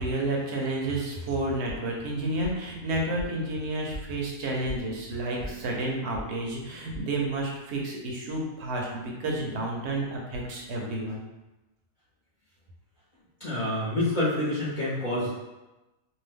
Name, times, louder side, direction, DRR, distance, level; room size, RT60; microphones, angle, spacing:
voice 1, 0.0-11.2, right 1 dB, 60° right, -1 dB, 0.9 m, -30 dB
sound 1, 2.4-7.5, equal, 15° right, 0.7 m, -44 dB
voice 2, 13.4-15.3, left 1 dB, 40° left, -11 dB, 0.8 m, -27 dB
2.7 x 2.3 x 3.4 m, 1.0 s
omnidirectional pair, 1.4 m